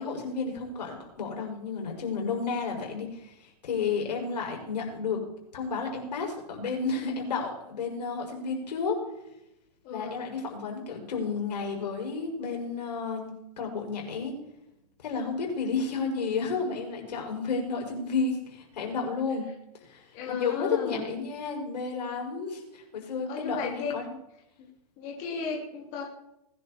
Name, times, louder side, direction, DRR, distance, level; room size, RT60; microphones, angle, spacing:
voice 1, 0.0-5.2 5.5-9.0 9.9-13.3 13.6-14.4 15.0-19.4 19.8-24.2, left 4 dB, 85° left, 1 dB, 5.9 m, -32 dB
voice 2, 20.1-21.1 23.3-23.9 25.0-26.0, left 5 dB, 35° left, -1 dB, 3.1 m, -34 dB
20.0 x 11.0 x 4.3 m, 0.86 s
hypercardioid pair, 155°, 21 cm